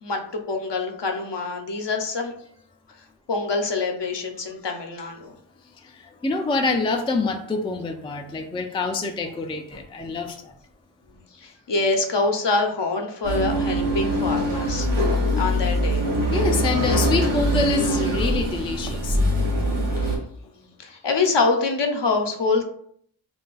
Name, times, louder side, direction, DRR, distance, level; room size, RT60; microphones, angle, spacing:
voice 1, 0.0-2.3 3.3-5.3 11.0-14.9 15.3-16.0 20.0-22.6, left 3 dB, 60° left, 3 dB, 0.7 m, -25 dB
voice 2, 5.9-10.5 15.3-15.4 16.3-19.2, left 3 dB, 10° left, 4 dB, 0.3 m, -26 dB
sound 1, 13.2-20.2, equal, 90° right, 0.9 m, -23 dB
2.5 x 2.3 x 3.8 m, 0.66 s
cardioid pair, 40°, 48 cm